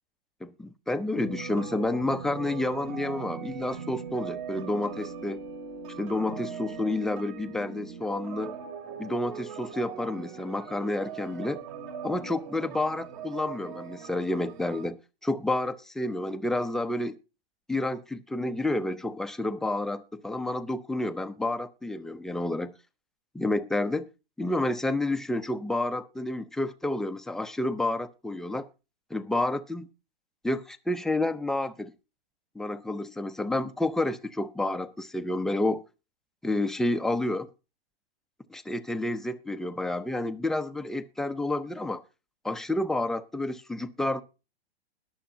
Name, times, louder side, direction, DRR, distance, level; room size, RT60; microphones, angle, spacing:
voice 1, 0.4-5.4 6.0-8.6 9.0-11.6 12.0-17.2 17.7-22.7 23.3-24.1 24.4-28.7 29.1-29.9 30.4-31.9 32.6-35.8 36.4-37.5 38.5-42.0 42.4-44.2, left 2 dB, ahead, 0.6 m, -30 dB
sound 1, 1.1-14.9, right 6 dB, 45° right, 2.5 m, -40 dB
21.5 x 7.1 x 2.7 m
hypercardioid pair, 120°, 32 cm